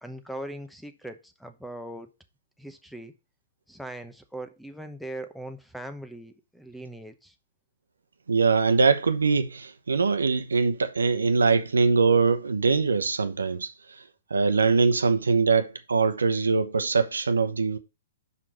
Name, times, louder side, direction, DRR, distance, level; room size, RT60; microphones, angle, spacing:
voice 1, 0.0-2.1 2.6-3.1 3.7-7.3, right 1 dB, ahead, 0.9 m, -40 dB
voice 2, 8.3-13.7 14.3-17.8, right 4 dB, 90° right, 0.9 m, -22 dB
5.6 x 5.0 x 6.1 m
hypercardioid pair, 130°, 0 cm